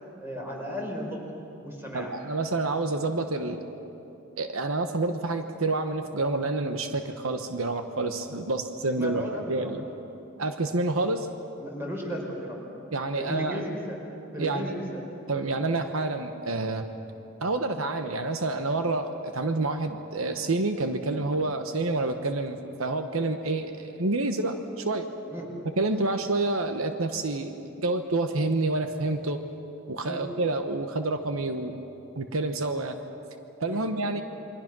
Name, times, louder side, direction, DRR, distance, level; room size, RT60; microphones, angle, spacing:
voice 1, 0.2-1.2 1.6-2.1 8.9-9.8 11.6-12.6 13.1-14.0 14.3-15.0 25.3-25.5 30.0-30.2 33.6-33.8, equal, 10° right, -1 dB, 4.9 m, -35 dB
voice 2, 1.9-3.6 4.4-9.8 10.4-11.3 12.9-13.6 14.4-14.8 15.3-16.8 17.4-25.1 25.8-27.6 27.8-29.4 29.9-31.8 32.2-33.0 33.6-34.2, right 2 dB, 80° right, 7 dB, 1.2 m, -28 dB
28.5 x 23.5 x 6.2 m, 2.9 s
head